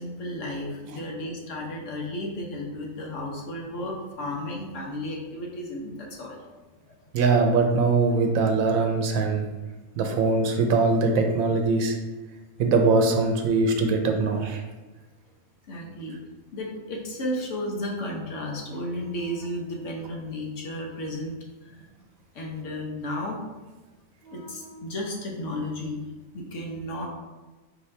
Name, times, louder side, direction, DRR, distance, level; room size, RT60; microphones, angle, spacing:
voice 1, 0.0-6.5 6.9-7.0 15.7-16.2 16.5-21.4 22.3-23.4 24.2-26.0 26.3-27.1, left 1 dB, 65° left, -1 dB, 1.2 m, -33 dB
voice 2, 7.1-9.5 10.0-11.9 12.6-14.6, right 3 dB, 90° right, 4 dB, 1.1 m, -22 dB
4.8 x 2.8 x 3.2 m, 1.2 s
omnidirectional pair, 1.4 m